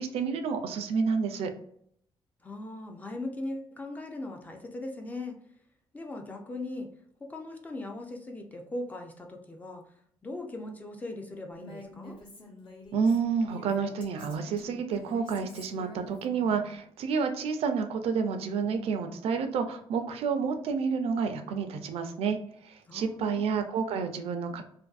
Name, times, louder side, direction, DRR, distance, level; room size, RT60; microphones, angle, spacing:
voice 1, 0.0-1.5 12.9-22.4 22.6-24.6, right 5 dB, 80° right, 7 dB, 0.4 m, -29 dB
voice 2, 2.4-5.4 5.9-6.9 7.2-9.9 10.2-12.2 22.9-23.6, left 2 dB, 15° left, 3 dB, 0.4 m, -39 dB
Female speech woman speaking, 11.6-16.7, left 2 dB, 55° left, 1.0 m, -48 dB
2.5 x 2.5 x 2.3 m, 0.67 s
cardioid pair, 155°, 10 cm